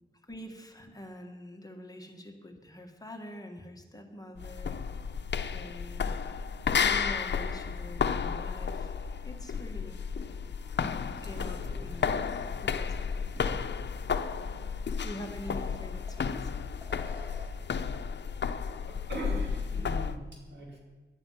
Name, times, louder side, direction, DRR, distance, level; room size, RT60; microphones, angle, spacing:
voice 1, 0.2-4.8 5.5-6.2 6.8-8.9 9.2-10.0 10.8-13.6 15.0-16.5, left 1 dB, 20° left, 3 dB, 1.7 m, -45 dB
sound 1, 4.4-20.2, left 6 dB, 75° left, 0.8 m, -32 dB
voice 2, 11.2-11.8 12.5-12.6 18.8-20.8, right 1 dB, 75° right, -2 dB, 5.0 m, -41 dB
sound 2, 12.9-13.0 13.4-13.5 15.3-16.4 16.8-17.7, left 2 dB, 10° right, 2.4 m, -51 dB
19.0 x 11.5 x 5.7 m, 1.2 s
wide cardioid pair, 145°, 18 cm